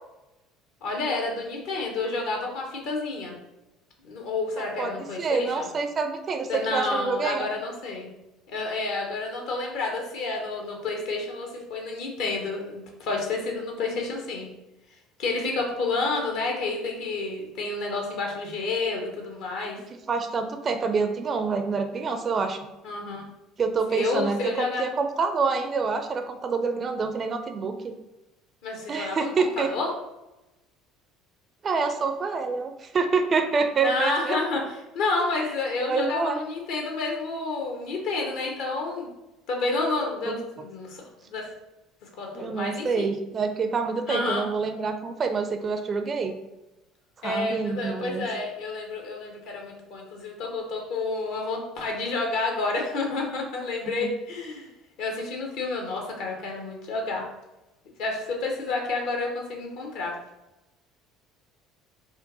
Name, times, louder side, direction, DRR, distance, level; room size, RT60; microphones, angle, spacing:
voice 1, 0.8-3.3 4.0-5.7 6.5-8.1 8.5-14.5 15.2-19.8 22.8-23.2 23.9-24.8 28.6-29.9 33.8-39.1 39.5-41.0 41.3-41.5 42.0-43.1 44.1-44.4 47.2-54.7 55.0-57.3 58.0-60.1, left 3 dB, 60° left, 1 dB, 1.0 m, -30 dB
voice 2, 4.6-7.5 20.1-22.6 23.6-24.4 24.8-27.9 28.9-29.7 31.6-34.4 35.8-36.4 40.3-40.4 42.3-46.4 47.2-48.2 53.9-54.1, right 4 dB, 35° right, 7 dB, 0.4 m, -27 dB
4.4 x 2.5 x 3.9 m, 0.99 s
figure-of-eight pair, 60°, 0 cm